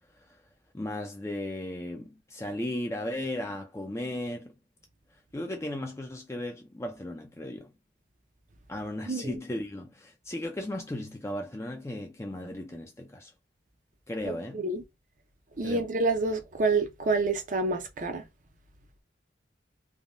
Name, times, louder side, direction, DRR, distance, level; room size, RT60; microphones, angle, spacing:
voice 1, 0.7-4.5 5.3-7.7 8.7-13.3 14.1-14.6 15.6-15.9, left 1 dB, 15° left, 0.4 m, -36 dB
voice 2, 9.1-9.4 14.5-14.8 15.6-18.2, right 3 dB, 45° right, 0.6 m, -28 dB
3.4 x 2.2 x 2.5 m
head